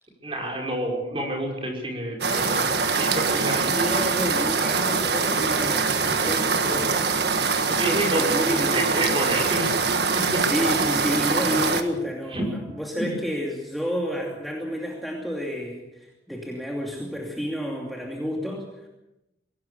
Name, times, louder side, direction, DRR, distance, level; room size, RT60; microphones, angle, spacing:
voice 1, 0.2-4.0 7.8-8.2 8.7-9.7 10.1-10.5 12.3-12.5 13.0-13.1, right 1 dB, 30° right, 1 dB, 5.5 m, -29 dB
sound 1, 2.2-11.8, right 4 dB, 60° right, 1.6 m, -23 dB
voice 2, 3.7-7.1 7.6-8.9 9.3-9.5 10.1-18.7, equal, ahead, -2 dB, 2.7 m, -30 dB
23.5 x 17.5 x 7.0 m, 0.93 s
head